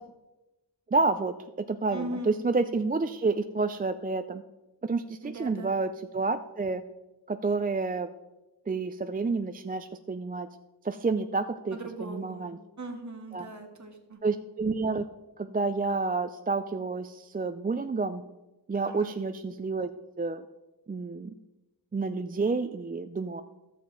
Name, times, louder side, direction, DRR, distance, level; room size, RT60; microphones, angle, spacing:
voice 1, 0.9-4.4 4.8-6.8 7.3-8.1 8.7-10.5 10.8-12.6 13.3-13.5 14.2-15.0 15.4-18.2 18.7-19.9 20.2-20.4 20.9-21.3 21.9-23.4, right 3 dB, 20° right, 8 dB, 0.3 m, -29 dB
voice 2, 1.9-2.3 5.2-5.7 11.7-12.5 12.8-14.2 18.9-19.1, right 2 dB, 40° right, 3 dB, 1.6 m, -39 dB
14.0 x 6.7 x 3.9 m, 1.0 s
wide cardioid pair, 80°, 43 cm